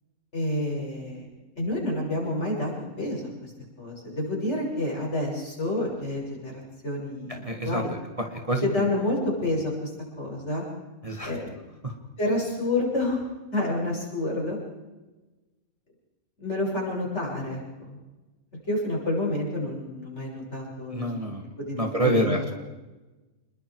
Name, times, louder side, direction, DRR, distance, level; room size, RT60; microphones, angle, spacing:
voice 1, 0.3-1.3 1.6-3.5 3.8-7.9 8.6-9.9 10.2-10.6 11.2-11.5 12.2-13.2 13.5-14.6 16.4-18.0 18.7-22.4, left 1 dB, 50° left, -2 dB, 6.8 m, -29 dB
voice 2, 7.3-7.9 8.2-8.9 11.0-11.4 11.8-11.9 20.9-22.5, right 1 dB, 25° right, 3 dB, 1.8 m, -28 dB
27.0 x 21.5 x 4.7 m, 1.2 s
omnidirectional pair, 1.5 m